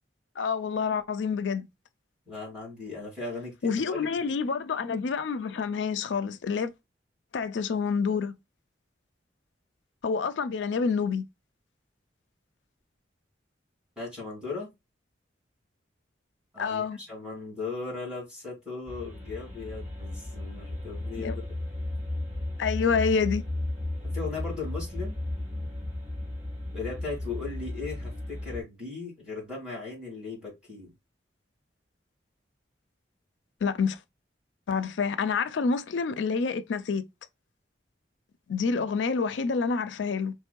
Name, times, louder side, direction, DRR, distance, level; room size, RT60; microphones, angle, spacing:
voice 1, 0.4-1.7 3.6-6.7 7.3-8.3 10.0-11.2 16.6-17.0 21.2-21.4 22.6-23.5 33.6-34.0 34.7-37.0 38.5-40.3, left 5 dB, 90° left, 0.4 m, -28 dB
voice 2, 2.3-4.1 14.0-14.7 16.5-21.4 24.0-25.2 26.7-30.9, left 4 dB, 5° right, 2.5 m, -37 dB
sound 1, 18.9-28.6, left 1 dB, 40° right, 1.9 m, -34 dB
4.5 x 3.1 x 2.2 m
head